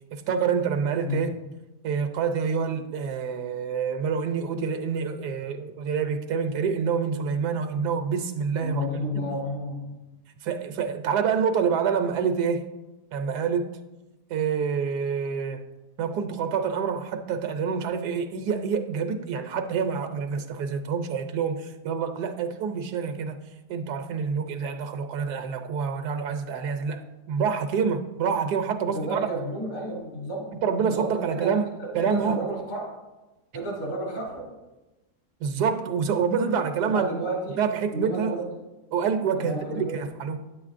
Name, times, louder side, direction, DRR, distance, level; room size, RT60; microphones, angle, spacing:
voice 1, 0.1-1.3 1.8-9.3 10.4-12.7 13.1-13.7 14.3-15.6 16.0-23.4 23.7-29.2 30.6-31.7 31.9-32.4 35.4-37.1 37.6-38.4 38.9-40.4, right 6 dB, 75° right, 6 dB, 1.2 m, -27 dB
voice 2, 1.0-1.3 8.6-10.0 28.9-30.5 30.9-31.5 31.8-32.9 33.5-34.5 36.8-37.6 37.9-38.5 39.4-40.0, equal, 65° left, -4 dB, 3.3 m, -31 dB
10.0 x 8.5 x 2.5 m, 1.0 s
omnidirectional pair, 1.8 m